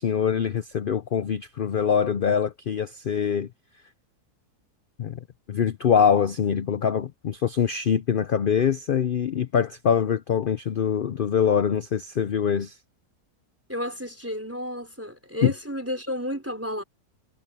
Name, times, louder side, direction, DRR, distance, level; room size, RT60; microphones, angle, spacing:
voice 1, 0.0-3.5 5.0-12.8 15.4-15.5, left 7 dB, 90° left, 0.4 m, -24 dB
voice 2, 13.7-16.8, left 1 dB, 10° right, 3.9 m, -32 dB
omnidirectional pair, 1.7 m